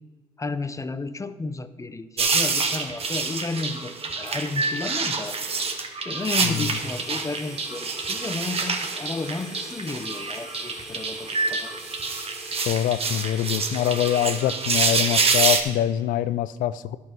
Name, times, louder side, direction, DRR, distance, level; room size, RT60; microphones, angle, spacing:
voice 1, 0.4-5.4 6.0-11.7, left 3 dB, 25° left, 12 dB, 0.7 m, -32 dB
sound 1, 2.2-15.6, right 4 dB, 45° right, 1.3 m, -27 dB
sound 2, 6.8-14.5, equal, 5° right, 2.3 m, -43 dB
voice 2, 12.6-17.0, left 11 dB, 80° left, 16 dB, 0.4 m, -24 dB
11.0 x 5.6 x 6.0 m, 1.4 s
supercardioid pair, 60°, 14 cm